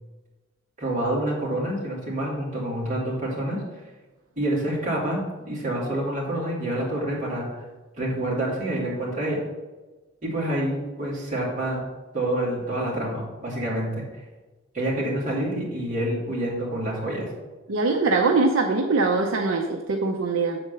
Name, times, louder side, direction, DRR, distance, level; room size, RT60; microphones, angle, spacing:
voice 1, 0.8-3.6 4.4-7.6 8.0-9.4 10.2-11.8 12.1-13.9 14.7-17.3, right 1 dB, 35° right, -5 dB, 2.6 m, -27 dB
voice 2, 17.7-20.6, right 3 dB, 75° right, 3 dB, 0.6 m, -22 dB
7.4 x 4.3 x 6.7 m, 1.2 s
head